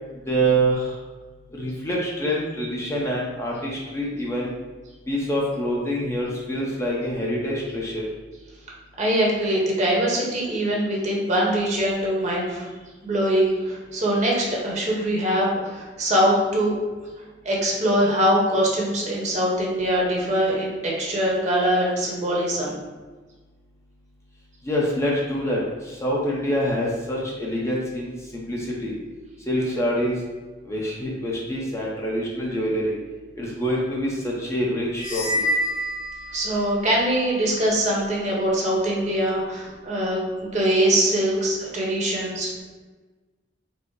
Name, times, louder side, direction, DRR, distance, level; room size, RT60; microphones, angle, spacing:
voice 1, 0.3-0.9 1.6-4.5 5.1-8.0 24.6-28.9 29.5-30.1 30.6-32.9 33.4-35.2, equal, 15° left, -4 dB, 0.6 m, -26 dB
voice 2, 9.0-12.7 13.0-16.7 17.4-22.7 36.3-42.5, right 1 dB, 40° right, -3 dB, 1.0 m, -23 dB
sound 1, 35.0-36.8, equal, 80° left, 1.3 m, -27 dB
4.6 x 2.0 x 4.6 m, 1.3 s
head